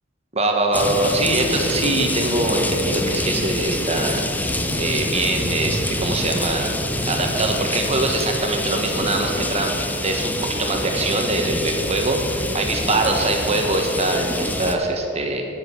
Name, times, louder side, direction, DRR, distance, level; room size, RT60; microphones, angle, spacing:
voice 1, 0.3-4.2 4.5-6.7 7.1-9.7 10.0-15.4, right 2 dB, 35° right, 2 dB, 1.6 m, -23 dB
sound 1, 0.7-14.8, left 1 dB, 10° left, 0.8 m, -26 dB
10.5 x 9.8 x 8.4 m, 2.9 s
head